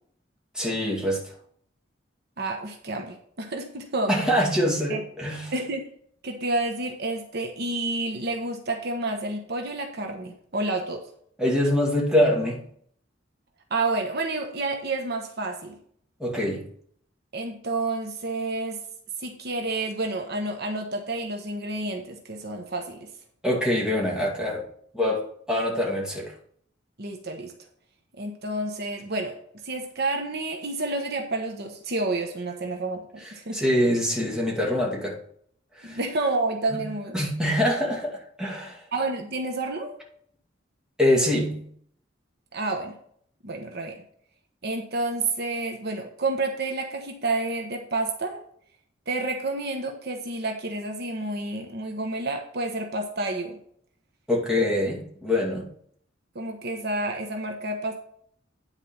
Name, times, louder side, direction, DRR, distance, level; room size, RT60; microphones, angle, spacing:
voice 1, 0.5-1.2 4.1-5.5 11.4-12.6 16.2-16.7 23.4-24.6 24.9-26.3 33.5-35.2 35.8-36.0 36.7-36.9 37.1-38.8 41.0-41.7 54.3-55.7, left 1 dB, 5° right, -3 dB, 2.4 m, -24 dB
voice 2, 2.4-4.2 4.9-5.0 5.5-5.9 6.2-11.0 13.7-15.8 17.3-18.8 19.2-23.1 27.0-27.5 28.2-29.3 29.6-33.6 35.8-37.2 38.9-39.9 42.5-43.0 43.4-44.0 44.6-48.4 49.1-53.6 56.3-58.0, right 2 dB, 60° right, 3 dB, 1.1 m, -29 dB
10.0 x 4.5 x 5.7 m, 0.62 s
head